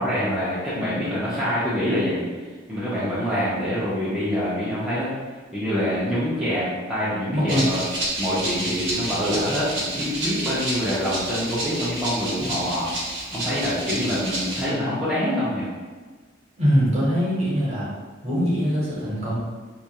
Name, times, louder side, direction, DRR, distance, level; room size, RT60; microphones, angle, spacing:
voice 1, 0.0-5.1 5.5-7.8 8.2-12.9 13.3-15.7, equal, 5° right, -12 dB, 0.4 m, -25 dB
voice 2, 7.3-7.7 16.6-17.9 18.2-19.4, equal, 35° right, -7 dB, 0.9 m, -22 dB
Rattle (instrument), 7.5-14.7, right 1 dB, 70° right, 0.8 m, -29 dB
2.3 x 2.2 x 2.8 m, 1.4 s
head